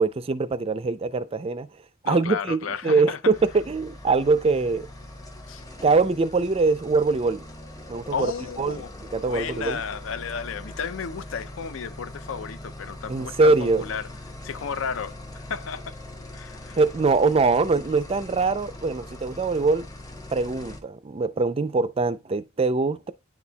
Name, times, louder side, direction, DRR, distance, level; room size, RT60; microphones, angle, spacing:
voice 1, 0.0-1.7 2.0-4.9 5.8-7.4 7.9-8.3 8.6-8.8 9.1-9.8 13.1-13.8 16.8-19.9 20.3-23.1, right 3 dB, 30° right, 0.4 m, -23 dB
voice 2, 2.0-3.2 5.5-5.6 8.1-8.9 9.3-14.1 14.4-16.0 16.3-16.8, left 6 dB, 65° left, 0.5 m, -33 dB
sound 1, 3.3-20.8, left 1 dB, 15° left, 0.9 m, -41 dB
10.0 x 4.2 x 2.2 m
head